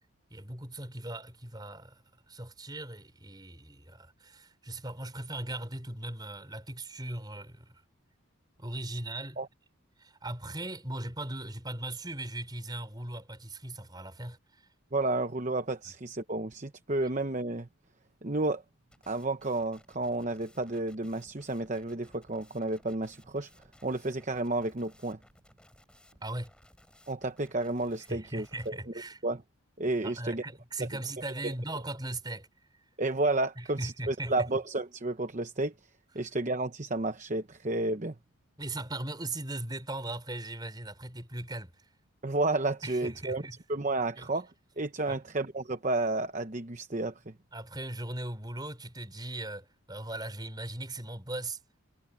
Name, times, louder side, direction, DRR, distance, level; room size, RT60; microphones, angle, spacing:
voice 1, 0.3-2.0 2.3-7.8 8.6-9.4 10.0-14.7 15.8-15.9 26.2-26.5 28.1-29.2 30.0-32.5 33.6-34.5 38.6-41.9 42.8-43.6 44.1-44.3 45.1-45.2 47.5-51.6, right 1 dB, 20° right, 5.0 m, -39 dB
voice 2, 14.9-17.7 18.2-18.6 19.1-23.5 23.8-25.2 27.1-28.8 29.2-29.4 29.8-30.4 30.8-30.9 31.4-31.5 33.0-35.7 36.1-38.1 42.2-43.4 43.7-44.5 44.8-47.3, right 2 dB, 35° right, 0.9 m, -31 dB
sound 1, 18.9-28.7, left 1 dB, 5° left, 7.2 m, -60 dB
head